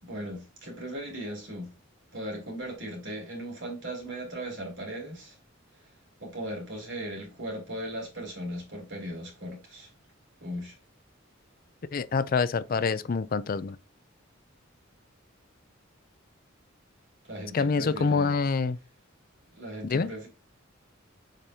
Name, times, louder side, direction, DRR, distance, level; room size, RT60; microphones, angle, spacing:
voice 1, 0.0-1.7 2.1-5.4 6.2-9.9 10.4-10.8 17.2-18.4 19.5-20.3, right 1 dB, 65° right, 3.3 m, -38 dB
voice 2, 11.9-13.8 17.5-18.8 19.8-20.1, left 4 dB, 45° left, 0.4 m, -26 dB
7.3 x 5.2 x 2.8 m
head